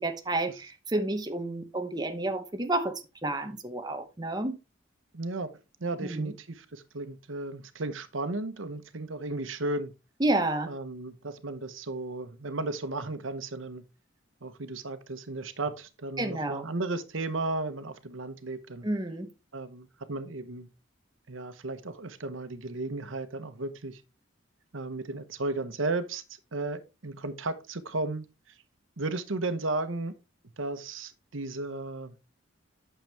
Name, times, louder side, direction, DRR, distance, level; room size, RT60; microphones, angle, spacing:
voice 1, 0.0-4.6 6.0-6.3 10.2-10.7 16.2-16.6 18.8-19.3, right 2 dB, 20° right, 0.9 m, -30 dB
voice 2, 5.1-5.5 5.8-9.9 10.7-13.8 14.4-18.9 19.5-20.7 21.3-24.0 24.7-26.2 26.5-28.2 29.0-30.1 30.6-32.1, right 2 dB, 85° right, 1.0 m, -34 dB
9.1 x 6.8 x 3.4 m
head